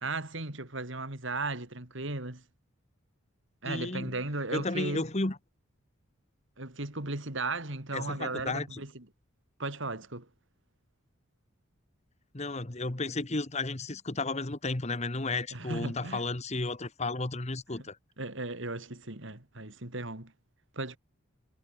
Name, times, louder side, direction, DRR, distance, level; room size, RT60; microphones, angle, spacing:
voice 1, 0.0-2.4 3.6-5.0 6.6-9.1 9.6-10.3 15.5-16.2 18.2-20.3 20.7-21.0, right 2 dB, 60° right, 3.2 m, -36 dB
voice 2, 3.6-4.2 4.5-5.4 7.9-8.8 12.3-18.0, left 3 dB, 30° left, 1.3 m, -33 dB
head